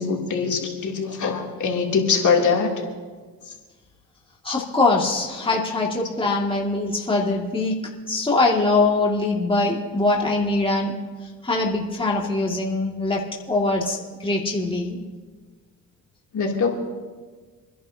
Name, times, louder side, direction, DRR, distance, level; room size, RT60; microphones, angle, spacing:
voice 1, 0.0-2.7 3.4-3.5 16.3-16.7, left 5 dB, 50° left, -1 dB, 3.0 m, -22 dB
voice 2, 4.4-7.8 8.1-11.0 11.4-13.2 13.5-15.0, left 2 dB, 15° left, -2 dB, 2.3 m, -22 dB
28.0 x 11.0 x 2.9 m, 1.4 s
supercardioid pair, 65°, 38 cm